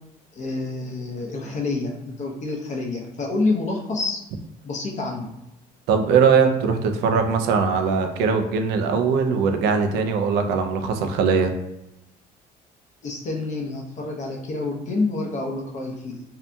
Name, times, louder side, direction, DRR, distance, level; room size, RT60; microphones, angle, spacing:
voice 1, 0.3-4.2 4.6-5.3 13.0-16.2, left 3 dB, 45° left, 0 dB, 0.7 m, -28 dB
voice 2, 5.9-11.5, right 5 dB, 90° right, 5 dB, 0.4 m, -20 dB
2.7 x 2.5 x 2.2 m, 0.89 s
cardioid pair, 110°, 17 cm